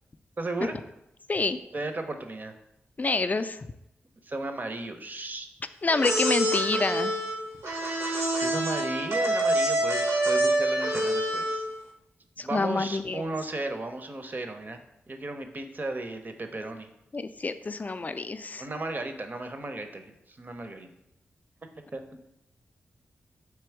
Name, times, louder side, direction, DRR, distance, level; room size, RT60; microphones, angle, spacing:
voice 1, 0.4-0.8 1.7-2.5 4.2-5.5 8.4-11.6 12.4-14.8 15.1-16.9 18.6-20.9 21.9-22.0, right 2 dB, 40° right, 6 dB, 0.6 m, -35 dB
voice 2, 3.0-3.6 5.8-7.1 12.4-13.2 17.1-18.6, left 3 dB, 35° left, 10 dB, 0.3 m, -27 dB
sound 1, 5.9-11.8, right 1 dB, 80° right, 0.8 m, -26 dB
3.4 x 2.9 x 4.6 m, 0.86 s
supercardioid pair, 40°, 5 cm